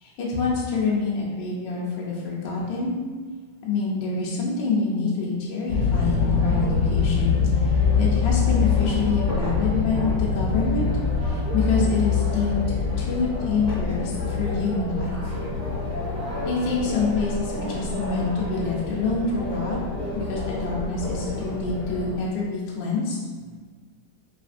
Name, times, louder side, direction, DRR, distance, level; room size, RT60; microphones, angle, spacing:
voice 1, 0.0-3.0 3.6-10.9 11.2-12.7 13.0-15.1 16.4-19.8 20.2-23.1, left 4 dB, 75° left, -5 dB, 1.3 m, -26 dB
sound 1, 5.7-22.2, left 5 dB, 45° right, 1.9 m, -25 dB
voice 2, 15.3-16.5 20.0-20.3 21.4-21.5, right 2 dB, 65° right, -11 dB, 0.6 m, -50 dB
4.2 x 3.2 x 2.4 m, 1.5 s
omnidirectional pair, 2.3 m